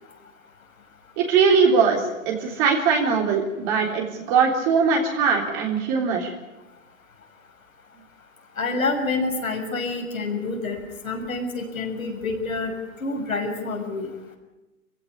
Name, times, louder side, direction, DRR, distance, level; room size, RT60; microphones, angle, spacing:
voice 1, 1.2-6.3, right 5 dB, 35° right, 1 dB, 3.6 m, -21 dB
voice 2, 8.6-10.8 11.0-12.7 13.0-14.1, left 3 dB, 90° left, 2 dB, 6.5 m, -27 dB
24.0 x 16.0 x 9.8 m, 1.0 s
hypercardioid pair, 135°, 40 cm